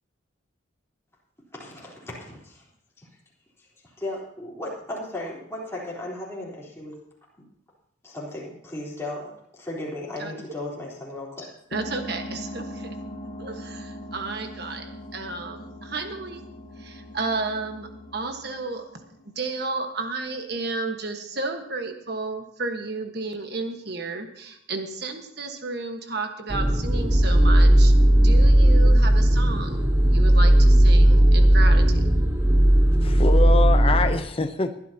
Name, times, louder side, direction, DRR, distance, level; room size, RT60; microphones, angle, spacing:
voice 1, 1.6-2.6 3.0-3.1 3.6-3.7 4.0-6.9 8.0-11.5, left 1 dB, 15° left, -5 dB, 3.7 m, -35 dB
sound 1, 11.7-19.8, equal, 45° left, 1.4 m, -40 dB
voice 2, 11.7-13.0 13.4-16.4 16.8-18.8 19.2-27.9 28.2-32.0, right 3 dB, 55° right, 5 dB, 1.4 m, -32 dB
sound 2, 26.5-34.2, right 1 dB, 10° right, 1.1 m, -16 dB
voice 3, 33.0-34.8, left 3 dB, 30° left, 8 dB, 0.7 m, -25 dB
20.5 x 12.0 x 2.9 m, 0.72 s
head